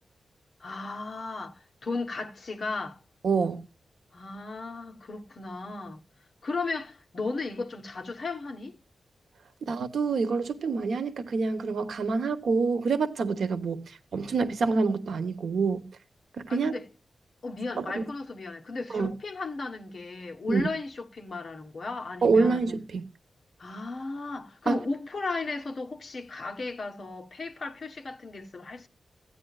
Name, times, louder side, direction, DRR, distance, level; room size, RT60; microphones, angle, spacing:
voice 1, 0.6-3.0 4.1-6.0 6.4-8.8 16.5-16.8 17.4-22.6 23.6-28.9, left 3 dB, 45° left, 1.1 m, -35 dB
voice 2, 3.2-3.6 9.7-13.8 14.1-15.9 16.4-16.7 17.8-18.0 18.9-19.1 20.5-20.7 22.2-23.0 24.7-24.8, right 4 dB, 80° right, 1.1 m, -26 dB
15.5 x 9.8 x 2.4 m
wide cardioid pair, 150°, 0 cm